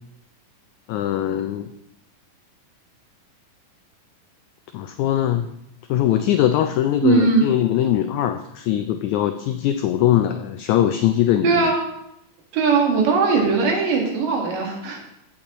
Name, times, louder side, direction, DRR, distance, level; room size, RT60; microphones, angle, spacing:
voice 1, 0.9-1.7 4.7-5.5 5.9-11.7, left 11 dB, 85° left, 7 dB, 1.7 m, -21 dB
voice 2, 7.0-7.5 11.4-11.8 12.5-15.0, right 4 dB, 75° right, 1 dB, 3.2 m, -19 dB
15.0 x 7.1 x 3.0 m, 0.80 s
omnidirectional pair, 3.9 m